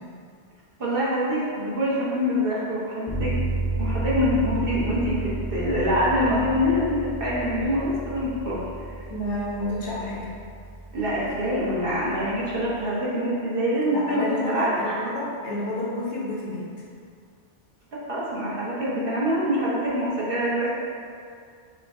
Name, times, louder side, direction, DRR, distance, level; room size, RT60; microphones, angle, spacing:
voice 1, 0.8-3.3 3.8-9.0 10.9-15.0 17.9-20.7, equal, 50° right, -7 dB, 1.1 m, -25 dB
sound 1, 3.1-12.8, right 2 dB, 5° left, 0.4 m, -32 dB
voice 2, 9.1-10.3 13.9-16.6, left 1 dB, 70° left, -6 dB, 1.2 m, -29 dB
6.0 x 2.2 x 3.5 m, 2.2 s
omnidirectional pair, 1.2 m